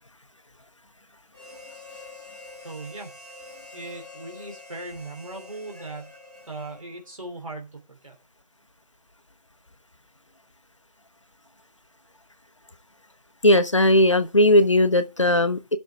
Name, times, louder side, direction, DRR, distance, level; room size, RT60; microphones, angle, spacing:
Harmonica, 1.3-7.1, left 2 dB, 5° right, 3.1 m, -45 dB
voice 1, 2.6-3.1 3.7-6.1 6.5-8.2, right 2 dB, 55° right, 3.0 m, -38 dB
voice 2, 13.4-15.8, left 1 dB, 50° left, 0.8 m, -18 dB
15.0 x 6.3 x 3.4 m
figure-of-eight pair, 170°, 21 cm